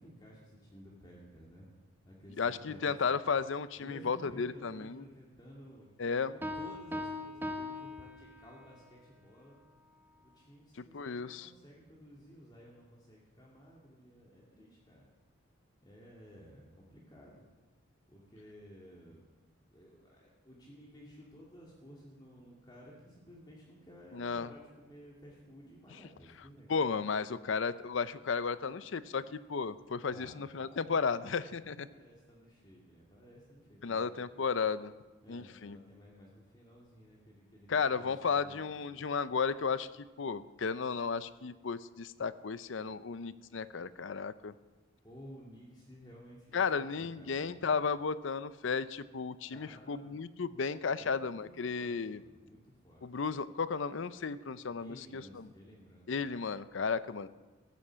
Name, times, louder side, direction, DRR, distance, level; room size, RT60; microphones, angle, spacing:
voice 1, 0.0-1.7 2.0-3.0 3.8-5.9 6.3-9.6 10.2-15.1 15.8-17.5 18.1-19.2 19.7-26.7 30.1-31.2 31.5-34.4 35.2-38.9 45.0-47.5 49.5-50.1 50.8-53.1 54.7-56.1, equal, 20° left, -4 dB, 2.4 m, -55 dB
voice 2, 2.4-5.0 6.0-6.3 10.8-11.5 24.1-24.5 26.7-31.9 33.8-34.9 35.3-35.8 37.7-44.5 46.5-52.2 53.0-55.5 56.1-57.3, left 5 dB, 75° left, 15 dB, 0.6 m, -34 dB
Piano, 6.4-8.8, left 1 dB, 10° right, 1.0 m, -40 dB
15.0 x 10.0 x 7.4 m, 1.2 s
head